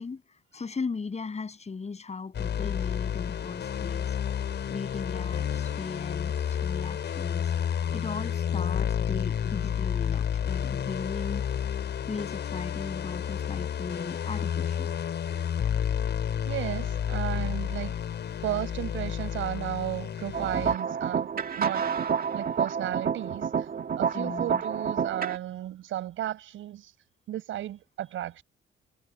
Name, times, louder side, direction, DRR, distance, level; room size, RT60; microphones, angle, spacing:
voice 1, 0.0-4.2 4.7-11.4 12.1-14.9 24.1-24.6, left 4 dB, 35° left, 7.1 m, -37 dB
sound 1, 2.3-20.8, left 8 dB, 60° left, 6.5 m, -30 dB
voice 2, 16.5-17.9 18.4-21.9 22.3-23.7 23.9-26.9 27.3-28.4, right 13 dB, 80° right, 6.2 m, -34 dB
sound 2, 20.3-25.4, right 7 dB, 50° right, 2.0 m, -29 dB
cardioid pair, 90°, 20 cm